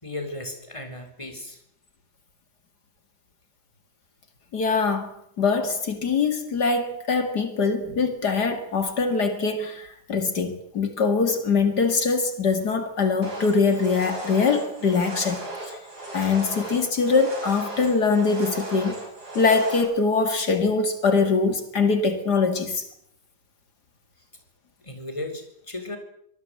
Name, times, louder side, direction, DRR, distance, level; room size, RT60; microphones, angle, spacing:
voice 1, 0.0-1.6 24.2-24.3 24.8-26.0, left 2 dB, 15° left, 5 dB, 4.2 m, -35 dB
voice 2, 4.5-5.1 5.4-15.8 16.1-18.9 19.3-22.9, left 4 dB, 70° left, 8 dB, 2.7 m, -23 dB
sound 1, 13.2-19.8, right 1 dB, 70° right, 7.1 m, -36 dB
25.0 x 19.5 x 7.8 m, 0.72 s
omnidirectional pair, 1.8 m